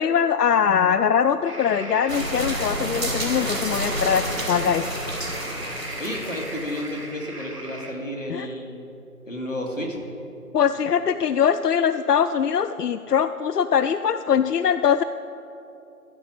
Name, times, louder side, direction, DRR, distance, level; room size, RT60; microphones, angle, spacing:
voice 1, 0.0-4.8 8.3-8.5 10.5-15.0, left 7 dB, 90° left, 12 dB, 0.5 m, -22 dB
sound 1, 1.4-7.9, right 1 dB, 90° right, 2.6 m, -37 dB
sound 2, 2.1-6.9, right 1 dB, 60° right, 1.9 m, -30 dB
voice 2, 6.0-8.8 9.3-10.0, left 1 dB, 55° left, 0 dB, 2.1 m, -31 dB
13.0 x 5.0 x 8.7 m, 2.9 s
figure-of-eight pair, 175°, 46 cm